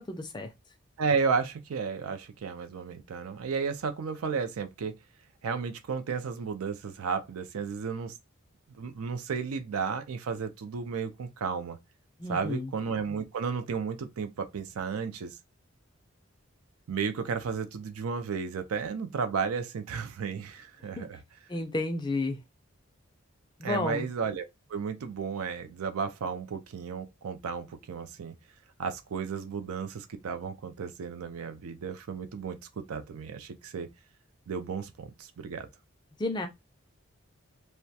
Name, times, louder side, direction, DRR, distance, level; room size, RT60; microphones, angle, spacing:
voice 1, 0.1-0.5 12.2-12.7 21.0-21.1 21.5-22.4 23.6-24.1 36.2-36.5, left 2 dB, 20° left, 0.3 m, -31 dB
voice 2, 1.0-4.9 5.4-8.1 8.8-11.8 12.3-15.4 16.9-21.2 23.6-28.3 28.8-33.9 34.5-35.7, right 5 dB, 90° right, 0.4 m, -33 dB
2.2 x 2.1 x 2.6 m
head